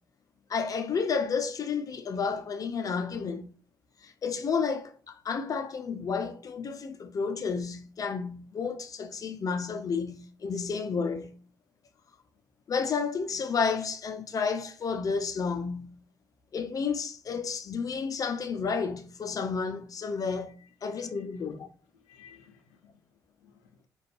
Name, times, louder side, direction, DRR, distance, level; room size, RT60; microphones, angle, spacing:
voice 1, 0.5-3.5 4.0-11.4 12.7-15.9 16.5-20.6 20.8-21.7, left 5 dB, 45° left, 0.7 m, -31 dB
voice 2, 20.6-21.3 21.9-22.9 23.4-23.8, left 7 dB, 80° left, 0.6 m, -58 dB
4.0 x 2.6 x 3.3 m
hypercardioid pair, 45°, 8 cm